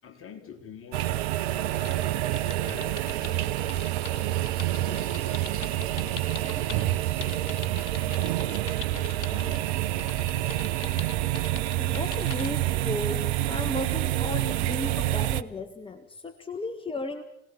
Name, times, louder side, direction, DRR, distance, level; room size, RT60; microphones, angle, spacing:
voice 1, 0.0-2.2 2.4-3.9 4.7-8.4 8.9-9.6 10.1-10.9 15.5-15.6, left 6 dB, 40° left, 4.3 m, -49 dB
sound 1, 0.9-15.4, right 14 dB, 65° right, 1.0 m, -28 dB
sound 2, 1.7-6.8 7.2-9.6 10.0-12.5, left 6 dB, 85° left, 1.2 m, -43 dB
voice 2, 11.8-17.2, left 2 dB, 15° left, 1.7 m, -35 dB
29.0 x 19.0 x 7.1 m
figure-of-eight pair, 65°, 34 cm